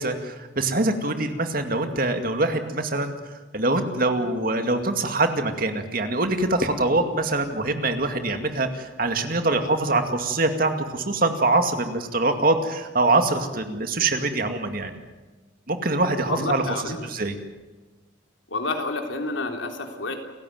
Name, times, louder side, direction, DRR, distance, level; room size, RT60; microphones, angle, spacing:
voice 1, 0.0-3.1 3.5-14.9 15.7-17.4, right 2 dB, 50° right, 7 dB, 2.3 m, -24 dB
voice 2, 16.3-17.1 18.5-20.2, left 3 dB, 90° left, 4 dB, 3.5 m, -29 dB
29.0 x 15.5 x 9.3 m, 1.2 s
head